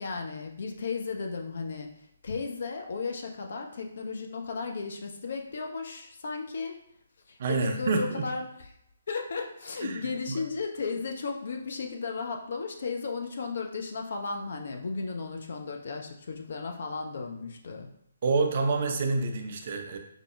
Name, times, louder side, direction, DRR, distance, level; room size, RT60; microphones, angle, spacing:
voice 1, 0.0-1.9 2.2-6.8 7.3-8.6 9.1-17.9, left 4 dB, 55° left, 3 dB, 0.4 m, -35 dB
voice 2, 7.4-8.3 9.8-10.4 18.2-20.0, right 3 dB, 45° right, 4 dB, 0.4 m, -28 dB
4.9 x 2.0 x 2.3 m, 0.74 s
figure-of-eight pair, 135°, 0 cm